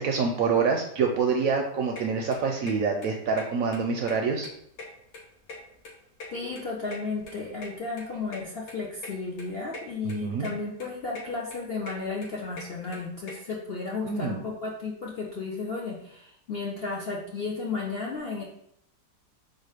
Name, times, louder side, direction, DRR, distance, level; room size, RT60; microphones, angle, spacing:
voice 1, 0.0-4.5 10.0-10.5 14.0-14.4, right 5 dB, 70° right, 3 dB, 0.8 m, -26 dB
sound 1, 2.0-2.1 2.3-2.7 3.0-3.1 3.4-3.5 3.7-4.5 4.7-5.9 6.2-7.7 8.0-8.1 8.3-8.4 8.7-8.8 9.0-9.1 9.4-9.8 10.1-10.5 10.8-11.2 11.5-13.3, left 3 dB, 80° left, 1.6 m, -41 dB
voice 2, 6.3-18.4, left 4 dB, 60° left, -4 dB, 0.6 m, -33 dB
4.4 x 2.4 x 4.8 m, 0.70 s
omnidirectional pair, 1.8 m